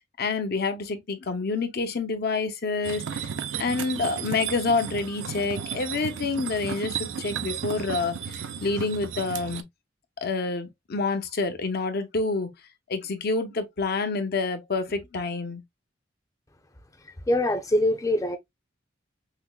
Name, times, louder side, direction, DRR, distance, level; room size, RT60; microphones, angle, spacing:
voice 1, 0.2-3.3 3.6-9.6 10.2-12.5 12.9-15.6, left 3 dB, 55° left, 0.7 m, -28 dB
sound 1, 2.8-9.6, right 7 dB, 75° right, 0.5 m, -34 dB
voice 2, 17.3-18.4, left 1 dB, 20° left, 0.6 m, -23 dB
5.8 x 2.1 x 2.2 m
head